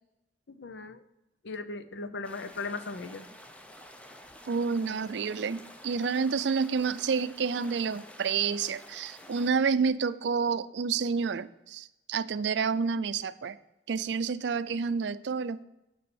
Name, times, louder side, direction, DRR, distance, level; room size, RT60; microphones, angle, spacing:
voice 1, 0.5-1.0 1.4-3.3, left 3 dB, 90° left, 11 dB, 0.7 m, -38 dB
sound 1, 2.2-9.5, left 1 dB, 5° left, 0.6 m, -50 dB
voice 2, 4.5-13.6 13.9-15.6, right 5 dB, 80° right, 15 dB, 0.4 m, -29 dB
6.8 x 5.6 x 6.9 m, 0.94 s
head